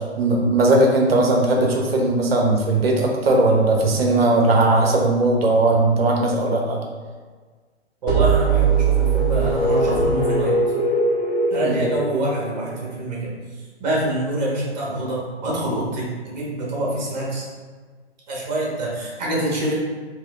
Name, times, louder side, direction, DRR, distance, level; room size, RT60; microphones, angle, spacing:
voice 1, 0.2-6.8 11.6-11.8, right 2 dB, 60° right, 0 dB, 0.7 m, -18 dB
voice 2, 8.0-10.6 11.5-13.3 13.8-17.5 18.3-19.7, right 1 dB, 40° right, -5 dB, 1.2 m, -25 dB
sound 1, 8.1-12.8, right 3 dB, 20° left, 0.8 m, -20 dB
3.4 x 2.9 x 2.4 m, 1.5 s
figure-of-eight pair, 130°, 34 cm